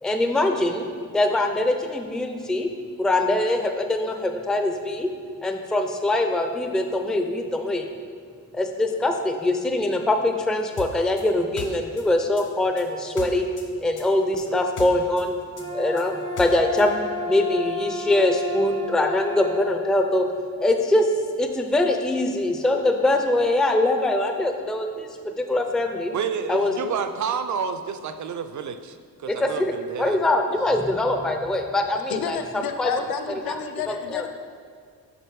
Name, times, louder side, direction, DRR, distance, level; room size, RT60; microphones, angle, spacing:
voice 1, 0.0-0.9 1.1-2.7 3.0-5.1 5.4-7.9 8.5-13.5 13.8-15.3 15.7-20.3 20.6-21.1 21.4-26.1 26.5-26.9 29.3-29.7 30.0-33.0 33.5-33.6 33.9-34.2, left 1 dB, ahead, 4 dB, 0.4 m, -23 dB
sound 1, 10.8-13.7 14.0-16.9, left 4 dB, 55° left, 0.9 m, -37 dB
sound 2, 15.5-19.7, left 1 dB, 80° right, 1.0 m, -32 dB
voice 2, 26.1-30.2, right 6 dB, 55° right, 9 dB, 0.5 m, -30 dB
voice 3, 32.1-34.3, left 7 dB, 80° left, 7 dB, 0.6 m, -30 dB
6.7 x 5.3 x 4.6 m, 2.1 s
wide cardioid pair, 135°, 36 cm